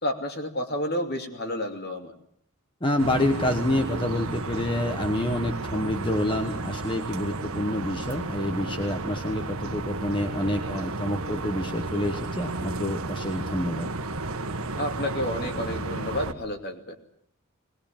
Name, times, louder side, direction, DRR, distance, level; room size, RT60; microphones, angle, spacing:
voice 1, 0.0-2.1 14.8-16.9, left 1 dB, 45° left, 5 dB, 2.6 m, -30 dB
voice 2, 2.8-13.9, left 1 dB, 20° left, 5 dB, 1.3 m, -28 dB
sound 1, 3.0-16.3, right 2 dB, 75° right, 1.4 m, -33 dB
20.5 x 20.0 x 8.9 m, 0.65 s
head